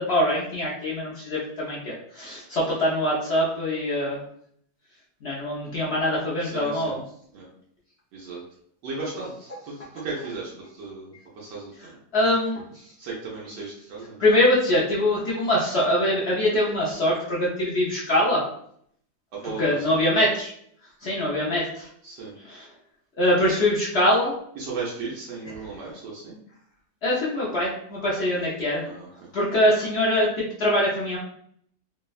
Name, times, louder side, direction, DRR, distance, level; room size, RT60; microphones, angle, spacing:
voice 1, 0.0-4.2 5.2-7.0 12.1-12.6 14.2-18.5 19.6-20.5 21.0-21.9 22.5-22.7 23.2-24.3 27.0-28.8 29.3-31.2, left 1 dB, 70° left, -6 dB, 0.6 m, -23 dB
voice 2, 6.4-7.0 7.3-7.5 8.1-8.4 8.8-10.5 10.8-11.7 13.0-14.2 19.4-20.0 22.0-22.3 24.6-26.4 28.8-29.1, right 4 dB, 90° right, -5 dB, 1.3 m, -35 dB
3.3 x 2.0 x 2.3 m, 0.66 s
omnidirectional pair, 1.8 m